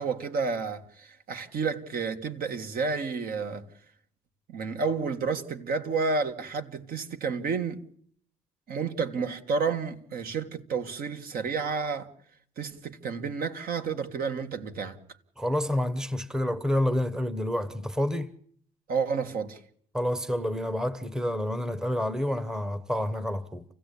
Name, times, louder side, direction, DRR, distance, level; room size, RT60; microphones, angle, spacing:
voice 1, 0.0-3.7 4.5-7.8 8.7-12.1 12.6-15.0 18.9-19.6, right 5 dB, 60° right, 1.9 m, -30 dB
voice 2, 15.4-18.3 19.9-23.6, left 1 dB, 5° right, 1.0 m, -28 dB
28.5 x 16.0 x 8.5 m
cardioid pair, 110°, 17 cm